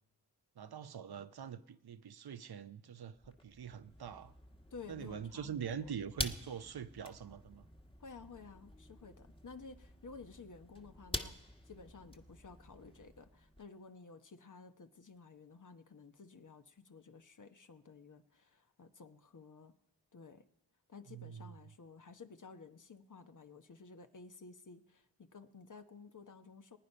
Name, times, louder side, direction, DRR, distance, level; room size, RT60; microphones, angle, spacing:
voice 1, 0.6-4.3 4.9-7.7 21.1-21.5, right 8 dB, 60° right, 12 dB, 0.9 m, -44 dB
sound 1, 3.2-13.7, left 1 dB, 10° left, 1.5 m, -47 dB
voice 2, 4.7-6.0 8.0-19.7 20.1-20.5 20.9-26.8, left 4 dB, 45° left, 8 dB, 1.1 m, -54 dB
21.5 x 9.5 x 5.6 m, 0.87 s
supercardioid pair, 40°, 43 cm